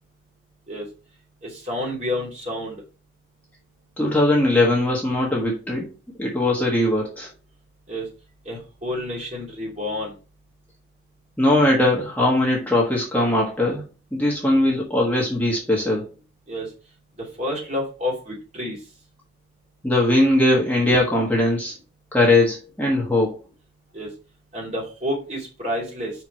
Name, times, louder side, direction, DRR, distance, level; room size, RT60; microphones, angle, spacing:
voice 1, 1.4-2.8 7.9-8.0 8.5-10.1 16.5-16.7 17.4-18.8 23.9-24.1 24.5-26.1, left 1 dB, 35° right, -3 dB, 2.8 m, -29 dB
voice 2, 4.0-5.9 6.2-7.3 11.4-13.8 14.1-16.1 19.8-21.7 22.1-23.4, left 1 dB, 10° left, -3 dB, 1.4 m, -20 dB
5.7 x 4.6 x 4.5 m, 0.33 s
head